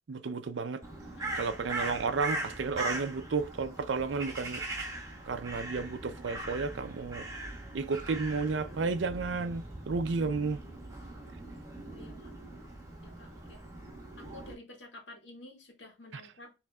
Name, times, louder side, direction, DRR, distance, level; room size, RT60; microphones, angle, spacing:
voice 1, 0.1-0.8 1.4-4.6 5.3-7.2 7.7-10.6, right 4 dB, 90° right, 0.5 m, -32 dB
Crow, 0.8-14.5, right 2 dB, 20° right, 1.5 m, -40 dB
voice 2, 1.1-1.5 11.8-12.3 13.0-13.6 14.2-16.5, left 2 dB, 85° left, 1.9 m, -51 dB
6.1 x 3.4 x 2.3 m
head